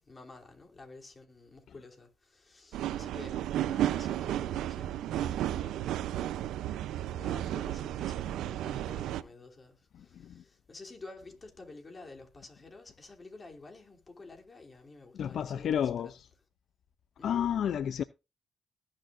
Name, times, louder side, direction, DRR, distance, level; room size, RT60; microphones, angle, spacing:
voice 1, 0.0-6.4 7.0-16.1 17.2-17.4, left 3 dB, 30° left, 3.1 m, -51 dB
sound 1, 2.7-9.2, right 12 dB, 85° right, 0.6 m, -33 dB
voice 2, 15.1-16.2 17.2-18.0, left 9 dB, 65° left, 0.5 m, -30 dB
19.5 x 6.5 x 2.6 m
cardioid pair, 90°, 0 cm